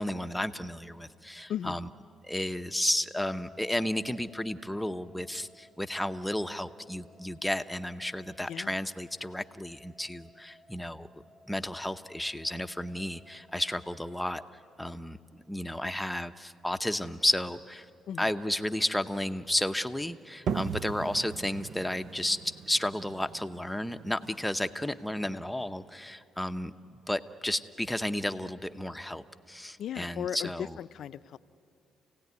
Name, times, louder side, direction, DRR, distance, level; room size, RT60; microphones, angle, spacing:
voice 1, 0.0-1.9 2.2-11.1 11.5-14.4 14.8-15.2 15.5-17.9 18.2-22.4 22.7-30.8, left 1 dB, 5° left, 9 dB, 0.8 m, -32 dB
sound 1, 3.2-15.3, left 1 dB, 40° right, 6.0 m, -57 dB
sound 2, 20.5-25.9, right 7 dB, 65° right, 0.6 m, -39 dB
voice 2, 29.8-31.4, left 9 dB, 70° left, 13 dB, 0.5 m, -36 dB
28.5 x 17.0 x 9.4 m, 2.5 s
cardioid pair, 90°, 0 cm